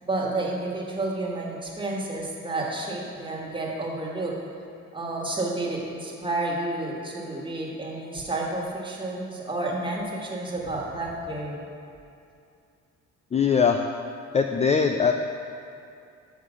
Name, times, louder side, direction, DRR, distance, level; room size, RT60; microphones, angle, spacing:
voice 1, 0.0-4.3 4.9-11.6, right 2 dB, 15° right, -3 dB, 1.5 m, -30 dB
voice 2, 13.3-13.8 14.3-15.1, left 6 dB, 25° left, 5 dB, 0.3 m, -21 dB
6.3 x 5.4 x 6.3 m, 2.6 s
cardioid pair, 90°, 30 cm